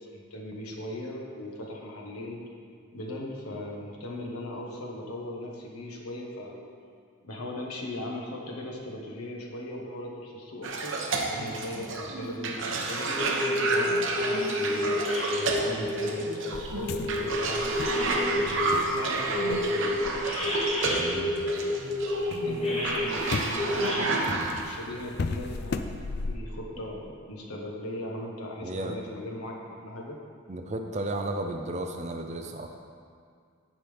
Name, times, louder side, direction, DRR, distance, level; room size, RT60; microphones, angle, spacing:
voice 1, 0.0-2.4 2.9-6.6 7.2-13.2 13.7-18.5 19.0-20.0 22.4-24.2 24.6-25.8 26.3-29.5 29.8-30.2, left 1 dB, 90° left, -1 dB, 1.5 m, -38 dB
Cough, 10.6-24.6, right 3 dB, 60° right, 0.9 m, -31 dB
sound 1, 13.2-18.8 19.3-24.0, left 1 dB, 30° left, 1.5 m, -29 dB
sound 2, 16.5-21.6 22.0-26.4, left 3 dB, 50° left, 0.4 m, -37 dB
voice 2, 20.9-21.3 28.6-29.0 30.5-32.8, right 1 dB, 30° right, 4 dB, 0.6 m, -33 dB
15.5 x 5.7 x 3.5 m, 2.2 s
head